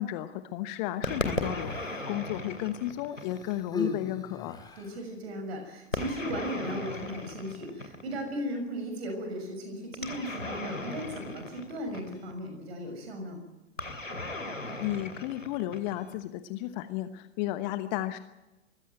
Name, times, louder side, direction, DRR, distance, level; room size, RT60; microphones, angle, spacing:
voice 1, 0.0-4.6 14.8-18.2, left 13 dB, 35° left, 11 dB, 1.1 m, -33 dB
sound 1, 1.0-3.7 5.9-8.3 9.9-12.4 13.8-16.2, left 2 dB, 85° left, 2.9 m, -37 dB
Human voice, 1.3-2.2 3.1-5.0 5.9-6.1, left 4 dB, 10° left, 4.3 m, -38 dB
voice 2, 4.8-13.4, equal, 55° right, 5 dB, 6.6 m, -36 dB
23.5 x 16.0 x 9.2 m, 1.0 s
figure-of-eight pair, 100°, 38 cm